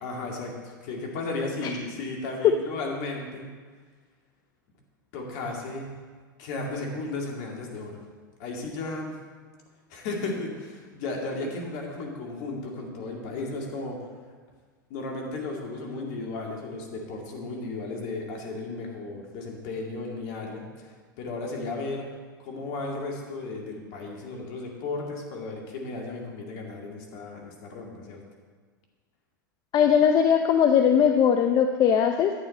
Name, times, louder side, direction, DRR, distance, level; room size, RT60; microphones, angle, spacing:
voice 1, 0.0-3.5 5.1-5.9 6.4-8.0 8.4-9.2 9.9-14.0 14.9-22.1 22.4-28.2, left 3 dB, 60° left, 0 dB, 2.3 m, -34 dB
voice 2, 29.7-32.3, left 8 dB, 40° left, 6 dB, 0.6 m, -20 dB
11.0 x 8.6 x 4.2 m, 1.5 s
hypercardioid pair, 95°, 11 cm